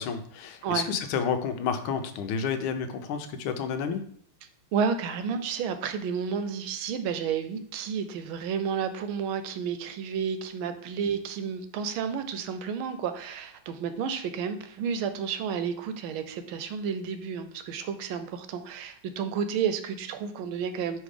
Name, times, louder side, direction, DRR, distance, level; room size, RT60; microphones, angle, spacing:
voice 1, 0.0-4.0, left 6 dB, 85° left, 8 dB, 1.5 m, -30 dB
voice 2, 4.7-21.0, right 7 dB, 80° right, 10 dB, 1.4 m, -31 dB
5.4 x 3.6 x 4.9 m, 0.62 s
omnidirectional pair, 2.3 m